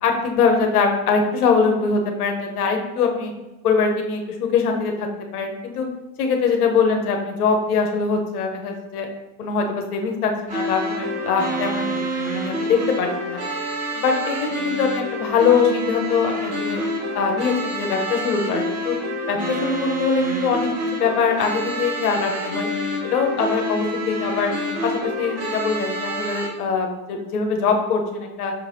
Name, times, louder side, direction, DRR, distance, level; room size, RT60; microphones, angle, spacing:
voice 1, 0.0-3.3 3.6-5.1 5.3-5.9 6.2-9.1 9.4-13.4 13.9-16.8 17.1-18.9 19.3-22.7 23.0-24.5 24.8-28.5, left 5 dB, 85° left, 3 dB, 0.9 m, -22 dB
sound 1, 10.5-26.5, equal, 55° right, 1.5 m, -27 dB
6.2 x 3.2 x 2.6 m, 1.1 s
hypercardioid pair, 90°, 44 cm